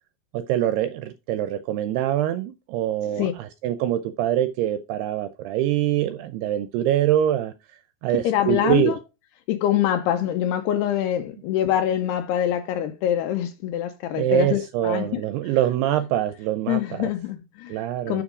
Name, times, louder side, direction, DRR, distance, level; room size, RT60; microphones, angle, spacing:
voice 1, 0.3-7.5 8.0-9.0 14.1-17.1 17.7-18.2, right 12 dB, 80° right, 2.4 m, -24 dB
voice 2, 8.2-9.0 9.5-15.2 16.7-17.8 18.1-18.2, left 11 dB, 80° left, 2.4 m, -24 dB
7.4 x 7.1 x 4.9 m
omnidirectional pair, 5.3 m